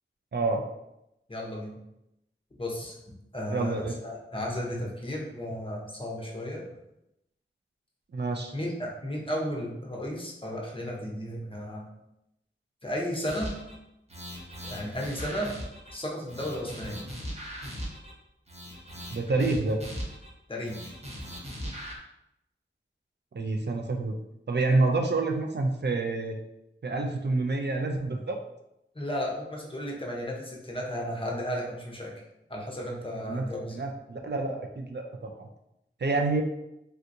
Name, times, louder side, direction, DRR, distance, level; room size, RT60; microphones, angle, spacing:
voice 1, 0.3-0.6 3.5-4.0 8.1-8.5 19.1-19.8 23.3-24.2 24.5-26.4 26.8-28.4 33.2-33.5 33.7-35.5 36.0-36.4, right 3 dB, 55° right, 3 dB, 0.4 m, -28 dB
voice 2, 1.3-1.8 2.6-2.9 3.3-6.6 8.5-11.8 12.8-13.5 14.6-15.5 15.9-17.1 20.5-21.0 28.9-32.1 32.5-33.8, equal, 25° left, -2 dB, 0.8 m, -34 dB
sound 1, 13.3-13.7 14.1-15.9 16.3-18.1 18.5-20.3 20.6-21.9, equal, 30° right, 0.9 m, -39 dB
3.3 x 2.7 x 2.6 m, 0.85 s
wide cardioid pair, 45°, 21 cm